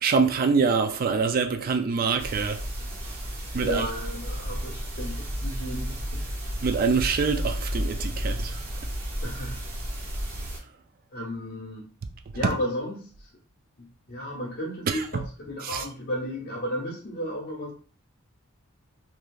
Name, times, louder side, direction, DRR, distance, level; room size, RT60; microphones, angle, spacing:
voice 1, 0.0-2.6 3.5-3.9 6.6-8.6 12.4-12.5 14.9-15.2 15.6-15.9, right 5 dB, 45° right, 0.3 m, -25 dB
sound 1, 2.2-10.6, equal, 60° right, 1.0 m, -32 dB
voice 2, 3.6-6.3 9.2-9.6 11.1-11.9 12.3-13.1 13.8-17.7, equal, 50° left, 0.9 m, -33 dB
3.1 x 2.6 x 2.3 m
head